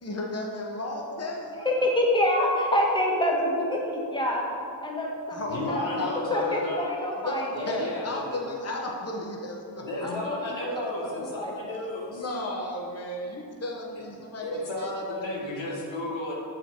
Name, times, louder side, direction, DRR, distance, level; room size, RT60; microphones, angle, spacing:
voice 1, 0.0-1.9 5.3-6.3 7.2-10.1 10.4-10.5 11.0-11.4 12.1-15.6, left 1 dB, 35° left, -1 dB, 1.0 m, -35 dB
voice 2, 1.6-4.5 4.8-5.8 6.3-7.8 10.0-11.7, left 1 dB, 10° left, -2 dB, 1.3 m, -27 dB
voice 3, 5.5-6.9 7.5-8.4 9.8-12.2 14.0-14.1 14.4-16.3, left 1 dB, 90° left, -3 dB, 1.3 m, -33 dB
6.5 x 5.0 x 4.5 m, 2.5 s
cardioid pair, 45°, 44 cm